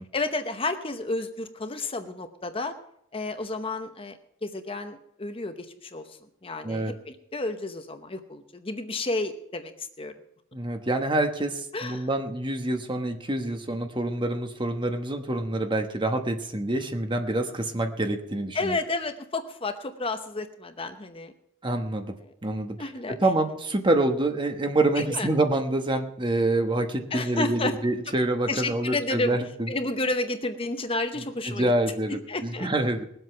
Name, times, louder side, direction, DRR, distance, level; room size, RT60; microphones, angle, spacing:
voice 1, 0.1-2.7 3.1-6.0 6.4-10.1 11.7-12.1 18.5-21.3 22.3-22.4 22.8-23.2 25.0-25.3 27.1-27.8 28.1-28.2 28.5-29.4 29.7-31.7 32.3-32.7, left 2 dB, 25° left, 8 dB, 0.8 m, -31 dB
voice 2, 6.6-6.9 10.5-18.8 21.6-22.1 22.4-22.8 23.1-29.7 31.4-33.0, right 2 dB, 25° right, 6 dB, 1.1 m, -26 dB
20.0 x 7.9 x 5.7 m, 0.74 s
head